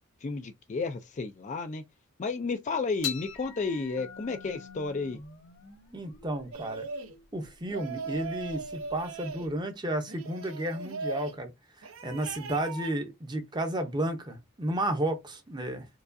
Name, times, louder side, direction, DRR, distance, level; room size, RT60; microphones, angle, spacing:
voice 1, 0.2-1.8 2.2-5.2, left 4 dB, 35° left, 0.3 m, -32 dB
sound 1, 3.0-9.6, left 8 dB, 70° left, 1.3 m, -43 dB
voice 2, 5.9-6.9 7.3-11.5 11.8-15.9, right 1 dB, 20° right, 0.7 m, -32 dB
sound 2, 6.5-7.1 7.7-9.5 10.1-11.4 11.8-12.9, right 4 dB, 65° right, 0.7 m, -39 dB
4.6 x 2.3 x 2.6 m
head